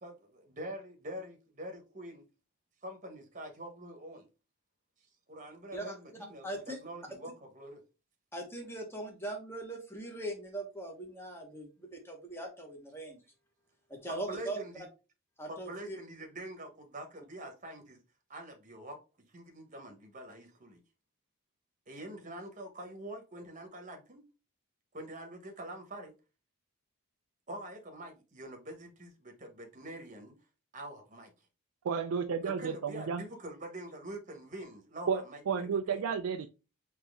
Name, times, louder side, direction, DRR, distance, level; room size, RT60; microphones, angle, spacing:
voice 1, 0.0-2.2 2.8-4.3 5.3-7.8 14.1-14.8 15.5-18.0 18.3-19.0 19.3-20.8 21.9-24.2 24.9-26.1 27.5-30.3 30.7-31.3 32.4-36.0, right 1 dB, 35° right, 1.0 m, -45 dB
voice 2, 6.4-6.8 8.3-13.2 13.9-14.6 15.4-16.0, right 1 dB, 10° left, 1.1 m, -40 dB
voice 3, 31.8-33.2 35.1-36.5, right 6 dB, 75° right, 0.4 m, -32 dB
4.1 x 2.9 x 3.4 m
head